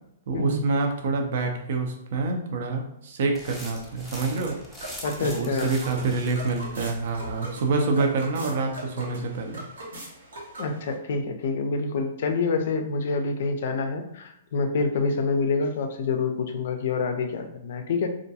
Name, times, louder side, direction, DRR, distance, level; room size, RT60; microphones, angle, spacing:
voice 1, 0.3-4.6 5.2-9.6, right 3 dB, 60° right, 3 dB, 0.5 m, -27 dB
sound 1, 3.3-7.5, left 1 dB, ahead, 0.6 m, -43 dB
sound 2, 3.8-10.9, right 1 dB, 80° right, 0.9 m, -41 dB
voice 2, 5.0-5.7 10.6-18.1, left 4 dB, 60° left, 6 dB, 0.4 m, -27 dB
2.4 x 2.2 x 2.7 m, 0.80 s
hypercardioid pair, 125°, 0 cm